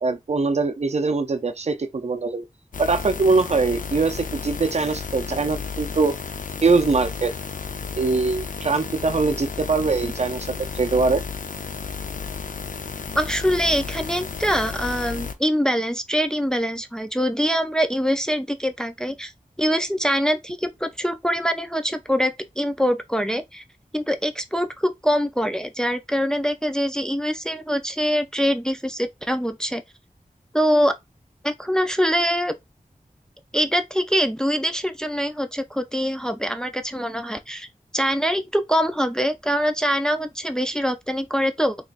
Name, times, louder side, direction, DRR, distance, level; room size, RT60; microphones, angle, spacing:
voice 1, 0.0-2.5 2.8-6.1 6.6-7.3 8.0-11.2, right 4 dB, 50° right, 0.5 m, -22 dB
sound 1, 2.7-15.3, left 5 dB, 70° left, 0.5 m, -33 dB
voice 2, 13.1-19.3 19.6-23.6 23.9-29.8 30.5-30.9 31.4-32.6 33.5-37.7 37.9-41.8, equal, 5° left, 0.4 m, -24 dB
3.8 x 3.0 x 2.4 m
wide cardioid pair, 80°, 14 cm